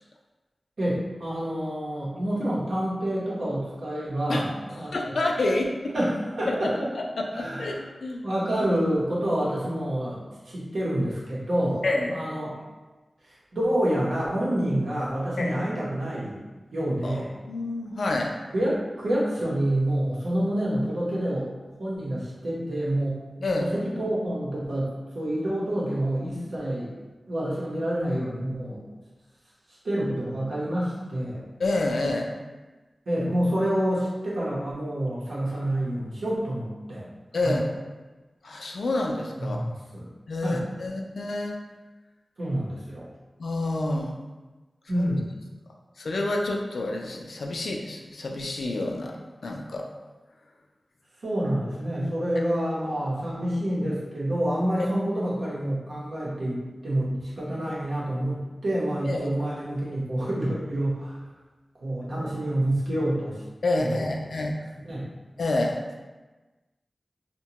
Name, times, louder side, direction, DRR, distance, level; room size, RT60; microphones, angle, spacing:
voice 1, 0.8-5.2 5.9-6.9 7.3-7.8 8.2-11.8 12.1-12.5 13.5-16.4 16.7-17.3 18.5-21.5 21.8-26.9 27.3-28.8 29.8-31.4 33.1-37.1 37.4-37.6 39.4-40.1 40.4-40.7 42.4-43.1 44.9-45.3 51.2-61.2 61.8-63.4 63.8-64.1 64.8-65.1, right 1 dB, 85° right, -7 dB, 0.8 m, -28 dB
voice 2, 4.9-5.9 6.5-8.2 11.8-12.2 15.4-15.6 17.0-17.2 17.5-18.3 23.4-23.7 31.6-32.3 37.3-37.6 38.4-39.6 40.3-41.6 43.4-44.2 45.0-45.1 46.0-49.2 49.4-49.9 59.0-59.5 63.6-64.5 65.4-65.8, left 2 dB, 90° left, 1 dB, 0.3 m, -28 dB
2.8 x 2.2 x 2.8 m, 1.2 s
wide cardioid pair, 90°, 0 cm